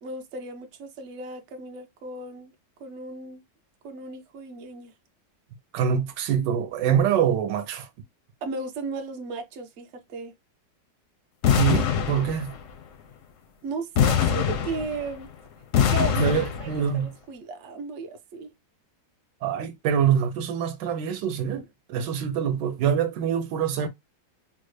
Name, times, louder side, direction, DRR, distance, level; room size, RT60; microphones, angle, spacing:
voice 1, 0.0-2.5 2.8-3.4 3.8-4.9 8.4-10.3 13.6-15.3 15.9-16.7 16.9-18.5 21.6-21.7, right 3 dB, 60° right, 0.7 m, -35 dB
voice 2, 5.7-7.9 11.6-12.5 16.2-17.1 19.4-21.6 21.9-23.9, right 8 dB, 75° right, 1.2 m, -25 dB
sound 1, 11.4-12.7 14.0-15.2 15.7-16.9, left 8 dB, 70° left, 0.7 m, -23 dB
3.8 x 2.0 x 3.1 m
omnidirectional pair, 2.0 m